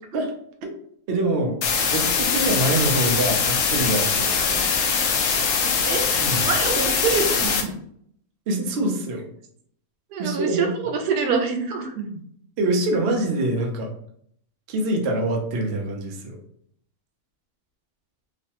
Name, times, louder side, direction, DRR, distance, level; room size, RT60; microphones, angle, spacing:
voice 1, 1.1-1.6 1.9-4.6 6.2-6.4 8.5-9.3 10.2-10.9 12.6-13.9 14.7-16.4, right 1 dB, 60° right, 2 dB, 0.7 m, -25 dB
sound 1, 1.6-7.6, left 5 dB, 70° left, 0.7 m, -22 dB
voice 2, 5.3-7.7 10.1-10.7 10.9-12.1, right 5 dB, 90° right, 3 dB, 1.1 m, -26 dB
3.1 x 2.1 x 2.8 m, 0.66 s
omnidirectional pair, 1.6 m